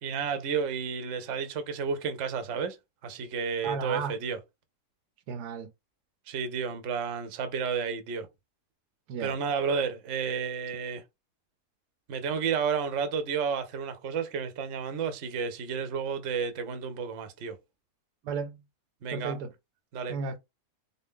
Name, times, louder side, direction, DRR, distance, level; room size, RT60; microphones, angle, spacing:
voice 1, 0.0-2.8 3.0-4.4 6.3-8.3 9.2-11.0 12.1-17.6 19.0-19.4 19.9-20.1, right 6 dB, 55° right, 1.0 m, -31 dB
voice 2, 3.6-4.1 5.3-5.7 9.1-9.3 18.2-18.6 19.1-19.5 20.1-20.4, right 5 dB, 80° right, 1.2 m, -33 dB
4.0 x 2.7 x 3.7 m
omnidirectional pair, 1.7 m